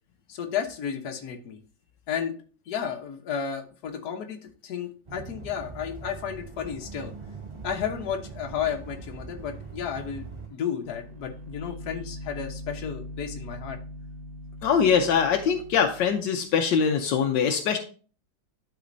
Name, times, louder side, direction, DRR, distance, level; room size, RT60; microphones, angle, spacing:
voice 1, 0.3-1.6 2.1-2.3 2.7-7.1 7.6-13.8, left 8 dB, 65° left, 4 dB, 1.5 m, -33 dB
sound 1, 5.1-10.5, right 4 dB, 30° right, 0.5 m, -41 dB
sound 2, 10.8-16.2, equal, 5° right, 2.6 m, -41 dB
voice 2, 14.6-17.8, left 7 dB, 80° left, 5 dB, 1.4 m, -23 dB
11.5 x 4.2 x 2.6 m, 0.40 s
omnidirectional pair, 1.9 m